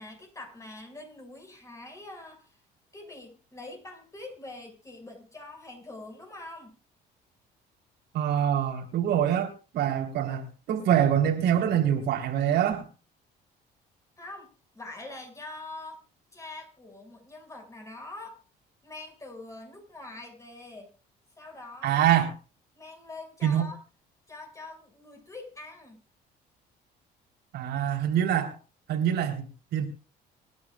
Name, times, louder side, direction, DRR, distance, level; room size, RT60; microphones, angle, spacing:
voice 1, 0.0-2.6 2.9-6.7 14.2-16.0 16.3-18.4 18.8-20.9 21.4-22.0 22.7-23.8 24.3-26.0, left 2 dB, 20° left, 6.5 m, -44 dB
voice 2, 8.1-12.9 21.8-22.3 23.4-23.7 27.5-28.6 28.9-29.9, right 10 dB, 80° right, 4.2 m, -25 dB
27.5 x 11.0 x 2.5 m
cardioid pair, 110°, 17 cm